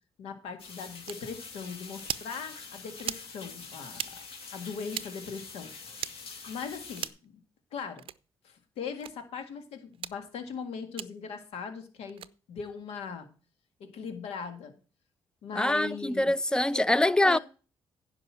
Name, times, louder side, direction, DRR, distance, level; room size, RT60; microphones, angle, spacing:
voice 1, 0.2-4.2 4.5-5.7 6.5-7.4 7.7-8.1 8.4-13.3 13.8-14.7 15.4-16.3 16.7-17.4, left 6 dB, 85° left, 1.9 m, -39 dB
sound 1, 0.6-7.1, left 4 dB, 70° left, 3.0 m, -45 dB
sound 2, 1.1-1.2 2.0-2.3 3.0-3.3 3.9-4.1 4.9-5.1 6.0-6.1 7.0-7.3 8.0-8.2 9.0-9.1 9.9-10.2 11.0-11.1 12.1-12.3, right 10 dB, 65° right, 0.5 m, -36 dB
voice 2, 15.5-17.4, left 1 dB, 10° left, 0.4 m, -24 dB
10.5 x 5.3 x 7.3 m
cardioid pair, 85°, 10 cm